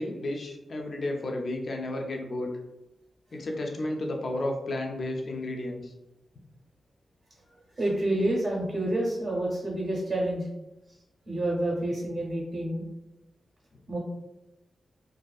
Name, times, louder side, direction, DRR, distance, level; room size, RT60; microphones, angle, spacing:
voice 1, 0.0-2.5 3.3-5.9, left 1 dB, 50° left, 1 dB, 0.3 m, -32 dB
voice 2, 7.8-10.5 11.3-12.8 13.9-14.0, right 1 dB, 40° right, -4 dB, 0.6 m, -28 dB
2.5 x 2.3 x 2.2 m, 0.95 s
wide cardioid pair, 155°, 0 cm